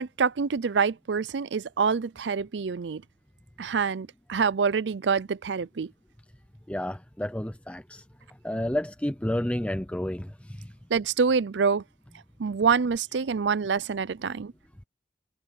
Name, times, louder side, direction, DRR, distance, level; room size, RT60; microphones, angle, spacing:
voice 1, 0.0-3.0 3.6-5.9 10.9-11.8 12.4-14.5, right 5 dB, 85° right, 0.5 m, -26 dB
voice 2, 6.7-8.0 8.4-10.7, left 1 dB, 5° left, 0.6 m, -30 dB
head